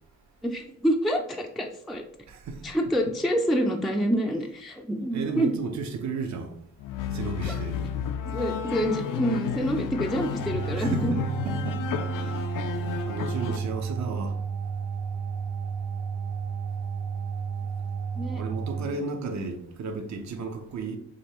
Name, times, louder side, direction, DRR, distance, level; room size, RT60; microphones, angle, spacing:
voice 1, 0.4-2.0 2.6-5.5 8.2-11.0 18.2-18.4 18.8-18.9, equal, ahead, 0.3 m, -27 dB
voice 2, 2.3-2.7 5.1-6.6 7.1-7.8 10.8-11.2 11.4-11.8 12.2-12.5 13.1-14.4 18.3-21.0, right 4 dB, 60° right, 0.8 m, -33 dB
sound 1, 6.8-13.6, left 7 dB, 80° left, 0.5 m, -32 dB
sound 2, 10.4-18.9, right 6 dB, 85° right, 0.9 m, -32 dB
5.2 x 3.2 x 2.9 m
cardioid pair, 110°, 32 cm